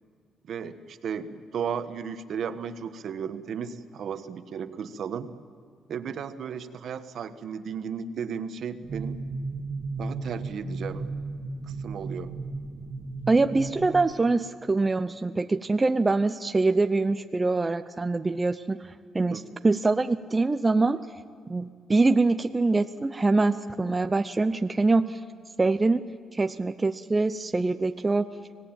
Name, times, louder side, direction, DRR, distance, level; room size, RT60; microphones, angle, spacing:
voice 1, 0.4-5.3 5.9-9.2 10.0-11.1 11.6-12.3 19.3-19.4, right 7 dB, 65° right, 10 dB, 1.3 m, -34 dB
sound 1, 8.8-14.0, right 3 dB, 50° right, 2.1 m, -35 dB
voice 2, 13.3-18.8 19.1-21.1 21.5-25.2 25.6-26.0 26.3-28.3, right 3 dB, 20° right, 9 dB, 0.7 m, -24 dB
25.0 x 17.5 x 9.0 m, 2.1 s
cardioid pair, 90°, 0 cm